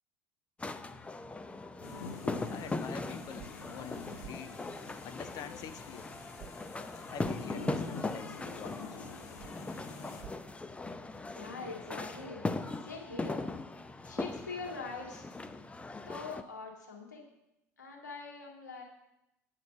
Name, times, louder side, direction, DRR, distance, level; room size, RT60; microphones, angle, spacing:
sound 1, 0.6-16.4, left 3 dB, 15° left, 0.6 m, -39 dB
sound 2, 1.8-10.2, left 4 dB, 70° left, 1.8 m, -47 dB
voice 1, 2.5-4.6 5.0-6.1 7.1-9.2, left 8 dB, 45° left, 9 dB, 0.9 m, -46 dB
sound 3, 3.4-3.5 4.2-4.3 6.4-6.5 7.2-7.3 9.4-9.5 10.2-10.3, right 12 dB, 55° right, 0.5 m, -48 dB
voice 2, 11.3-12.5 12.8-13.4 14.1-15.3 16.1-17.3 17.8-18.8, left 4 dB, 90° left, -1 dB, 2.1 m, -43 dB
9.1 x 5.8 x 7.9 m, 0.88 s
hypercardioid pair, 70°, 9 cm